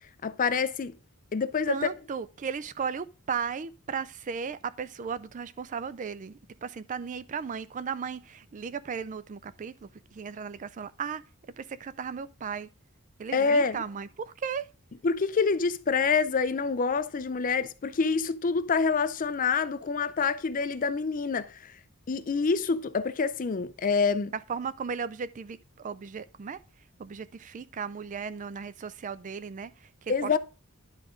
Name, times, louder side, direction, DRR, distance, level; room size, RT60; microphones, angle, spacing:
voice 1, 0.2-0.9 1.3-1.8 13.3-13.8 15.0-21.7 22.1-24.3 30.1-30.4, left 5 dB, 40° left, 0.5 m, -27 dB
voice 2, 1.7-11.2 11.6-12.7 13.2-14.7 24.3-26.6 27.0-30.3, right 6 dB, 35° right, 0.4 m, -36 dB
10.5 x 3.7 x 5.0 m
head